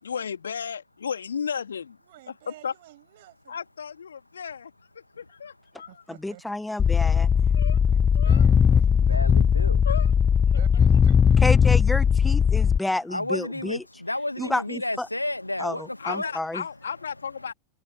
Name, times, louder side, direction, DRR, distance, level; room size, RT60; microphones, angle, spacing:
voice 1, 0.0-2.0 2.3-2.7 3.5-6.0 7.5-7.8 8.1-8.5 9.9-10.1 16.0-17.5, left 7 dB, 70° left, 3.5 m, -34 dB
voice 2, 2.0-3.6 5.9-6.4 7.9-9.3 10.6-11.4 11.8-12.0, right 17 dB, 55° right, 7.2 m, -50 dB
voice 3, 6.2-7.3 11.4-13.8 14.4-15.1 15.6-16.6, left 1 dB, 5° left, 1.9 m, -30 dB
sound 1, 6.8-12.8, left 7 dB, 20° left, 0.8 m, -19 dB
voice 4, 9.0-9.8 13.1-16.3, left 1 dB, 85° left, 2.3 m, -31 dB
figure-of-eight pair, 90°, 0 cm